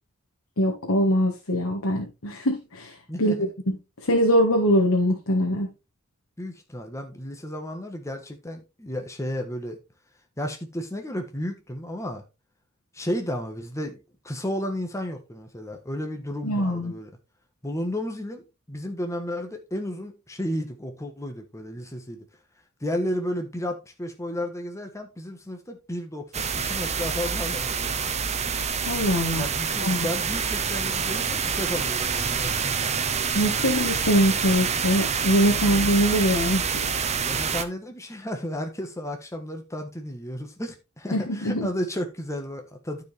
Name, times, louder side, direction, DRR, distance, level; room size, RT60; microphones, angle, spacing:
voice 1, 0.6-3.4 3.7-3.8 4.0-5.7 16.4-16.9 28.8-29.4 29.8-30.1 33.3-36.7 41.1-41.7, equal, 65° left, 1.6 m, -23 dB
voice 2, 3.1-3.5 6.4-9.8 10.4-12.2 12.9-14.0 14.2-17.1 17.6-22.2 22.8-28.2 29.4-32.9 37.2-43.0, equal, 15° left, 1.4 m, -33 dB
sound 1, 26.3-37.6, right 6 dB, 30° right, 0.8 m, -27 dB
13.0 x 4.8 x 3.4 m
head